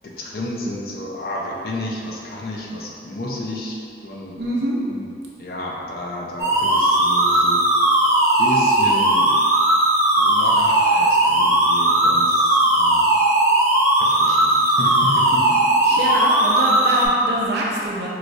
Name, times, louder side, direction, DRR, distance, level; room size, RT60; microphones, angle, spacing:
voice 1, 0.0-4.3 4.8-5.1 5.4-7.6 8.4-9.3 10.2-13.1 14.0-15.6 16.0-16.1, left 1 dB, 55° left, -2 dB, 0.5 m, -31 dB
voice 2, 4.4-4.8 15.8-18.1, equal, 75° right, -4 dB, 0.6 m, -24 dB
sound 1, 6.4-17.1, right 1 dB, 15° right, 0.5 m, -17 dB
4.7 x 2.0 x 2.6 m, 2.4 s
head